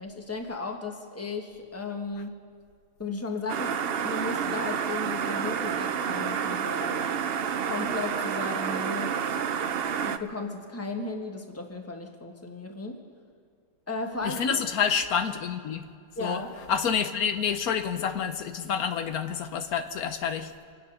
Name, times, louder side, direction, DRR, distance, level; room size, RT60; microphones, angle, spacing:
voice 1, 0.0-2.3 3.0-7.1 7.7-9.4 10.0-13.0 13.9-14.6 16.2-16.6, left 3 dB, 10° left, 3 dB, 1.3 m, -35 dB
sound 1, 3.5-10.2, right 7 dB, 55° right, 0.7 m, -29 dB
voice 2, 14.2-15.8 16.2-16.4 16.7-20.5, left 7 dB, 80° left, 8 dB, 1.3 m, -28 dB
26.5 x 9.4 x 5.4 m, 2.1 s
omnidirectional pair, 1.5 m